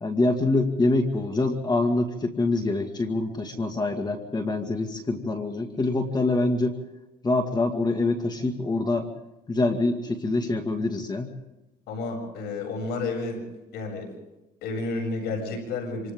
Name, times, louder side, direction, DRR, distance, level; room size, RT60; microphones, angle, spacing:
voice 1, 0.0-6.8 7.2-9.1 9.5-11.3, left 2 dB, 25° left, 4 dB, 2.1 m, -25 dB
voice 2, 11.9-13.4 13.7-14.1 14.6-16.1, left 3 dB, 80° left, 1 dB, 7.9 m, -31 dB
27.5 x 27.0 x 3.8 m, 0.99 s
cardioid pair, 110°, 17 cm